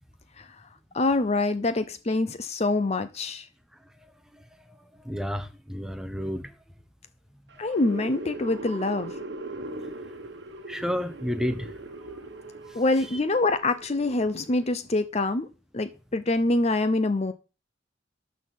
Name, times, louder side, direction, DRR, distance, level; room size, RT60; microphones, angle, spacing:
voice 1, 0.9-3.5 7.6-9.1 12.7-15.5 15.7-17.3, left 2 dB, 35° left, 0.7 m, -25 dB
voice 2, 4.3-6.5 10.7-11.7 12.7-12.8 13.1-13.2, equal, 5° right, 1.0 m, -32 dB
sound 1, 7.5-14.7, right 2 dB, 60° right, 1.2 m, -40 dB
12.0 x 4.2 x 7.3 m
head